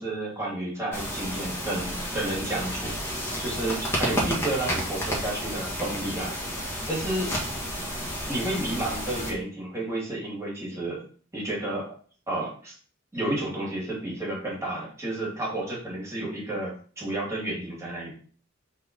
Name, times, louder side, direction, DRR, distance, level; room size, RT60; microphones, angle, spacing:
voice 1, 0.0-6.3 6.9-7.4 8.3-11.0 11.3-11.9 12.3-12.7 13.1-18.1, right 1 dB, 15° right, -4 dB, 2.9 m, -31 dB
sound 1, 0.9-9.3, equal, 15° left, 1.9 m, -31 dB
4.9 x 4.3 x 5.4 m, 0.43 s
head